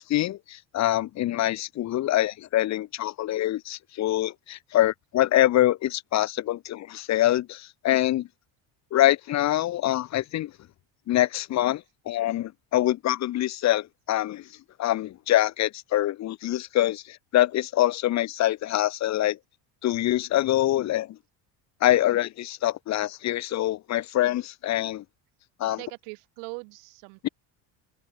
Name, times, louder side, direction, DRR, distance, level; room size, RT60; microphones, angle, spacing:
voice 1, 0.0-8.3 8.9-10.5 11.1-14.5 14.8-19.4 19.8-21.2 21.8-25.0 25.6-25.8 27.2-27.3, left 14 dB, 35° left, 1.4 m, -25 dB
voice 2, 25.6-27.3, right 40 dB or more, 85° right, 3.5 m, -41 dB
open air
cardioid pair, 165°, 45 cm